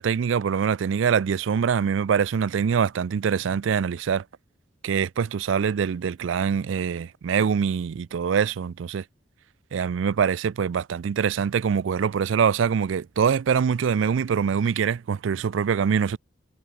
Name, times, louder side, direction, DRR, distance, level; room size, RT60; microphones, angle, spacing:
voice 1, 0.0-4.2 4.8-9.0 9.7-16.2, right 7 dB, 75° right, 0.4 m, -24 dB
head